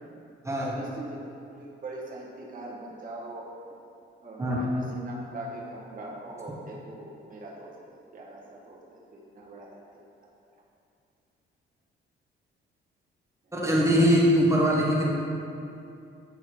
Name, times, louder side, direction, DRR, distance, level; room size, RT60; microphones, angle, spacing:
voice 1, 0.6-1.2 1.6-3.5 4.2-9.8 13.4-13.5, right 2 dB, 45° right, -3 dB, 1.5 m, -41 dB
voice 2, 13.5-15.1, equal, 15° right, -4 dB, 1.2 m, -22 dB
8.7 x 4.0 x 4.5 m, 2.6 s
cardioid pair, 90°, 20 cm